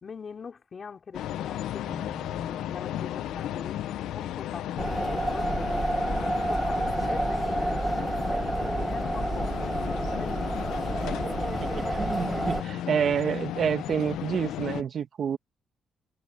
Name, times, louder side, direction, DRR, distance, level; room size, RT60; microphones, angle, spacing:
voice 1, 0.0-3.8 4.1-7.9 8.7-9.7 10.1-10.5, left 5 dB, 45° left, 4.2 m, -43 dB
sound 1, 1.1-14.8, left 12 dB, 90° left, 1.1 m, -35 dB
sound 2, 1.8-10.9, left 2 dB, 20° left, 5.7 m, -49 dB
sound 3, 4.8-12.6, right 1 dB, 10° right, 1.6 m, -29 dB
voice 2, 11.0-11.3 11.6-15.4, right 8 dB, 60° right, 1.9 m, -29 dB
cardioid pair, 95°, 0 cm